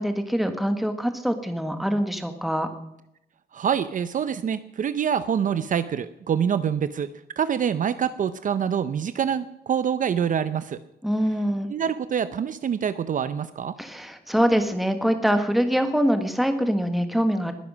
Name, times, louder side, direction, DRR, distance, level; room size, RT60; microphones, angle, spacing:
voice 1, 0.0-2.7 11.0-11.7 13.8-17.5, equal, ahead, 7 dB, 1.4 m, -24 dB
voice 2, 3.5-7.1 7.4-10.8 11.7-13.8, right 8 dB, 50° right, 13 dB, 0.6 m, -25 dB
20.5 x 9.9 x 6.2 m, 0.84 s
wide cardioid pair, 170°, 18 cm